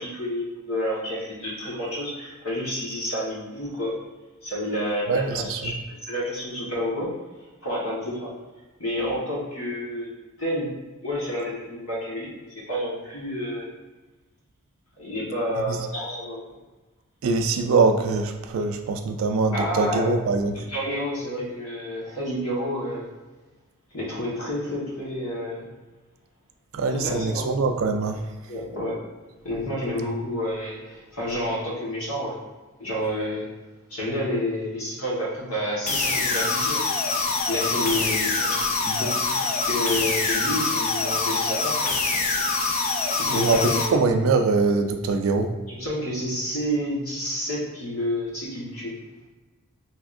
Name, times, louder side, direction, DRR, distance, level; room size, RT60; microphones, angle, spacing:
voice 1, 0.0-4.0 4.4-7.1 7.6-8.3 8.8-10.1 10.4-10.7 11.0-13.7 15.0-16.4 19.5-20.1 20.5-23.1 23.9-25.7 26.9-27.5 28.5-29.1 29.4-32.4 32.8-33.4 33.9-36.8 37.5-41.9 43.2-44.0 45.7-48.9, equal, 70° left, -5 dB, 1.2 m, -29 dB
voice 2, 5.1-5.7 15.7-15.8 17.2-20.5 26.7-28.2 43.3-43.6 43.9-45.5, right 4 dB, 65° right, 6 dB, 0.3 m, -23 dB
sound 1, 35.9-43.9, left 3 dB, 35° left, 0.4 m, -25 dB
3.4 x 2.8 x 2.4 m, 1.2 s
head